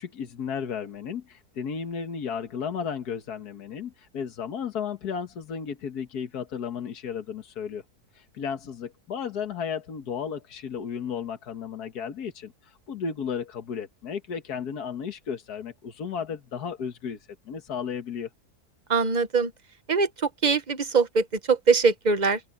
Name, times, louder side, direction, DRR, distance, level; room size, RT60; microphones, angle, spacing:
voice 1, 0.0-7.8 8.1-17.2 17.5-18.3, left 7 dB, 80° left, 1.9 m, -34 dB
voice 2, 18.9-19.5 19.9-22.4, right 4 dB, 30° right, 1.0 m, -22 dB
open air
omnidirectional pair, 1.6 m